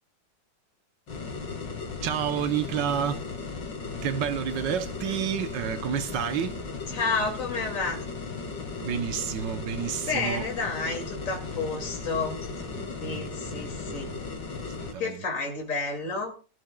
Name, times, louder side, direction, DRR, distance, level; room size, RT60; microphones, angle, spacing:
sound 1, 1.1-14.9, left 4 dB, 75° left, 2.7 m, -36 dB
voice 1, 2.0-3.2 4.0-6.6 8.8-10.4 12.7-14.0 14.5-15.2, right 9 dB, 75° right, 1.5 m, -30 dB
voice 2, 6.9-8.0 10.1-12.6 13.0-14.1 15.0-16.4, left 3 dB, 45° left, 2.9 m, -30 dB
19.0 x 11.5 x 2.3 m
omnidirectional pair, 2.0 m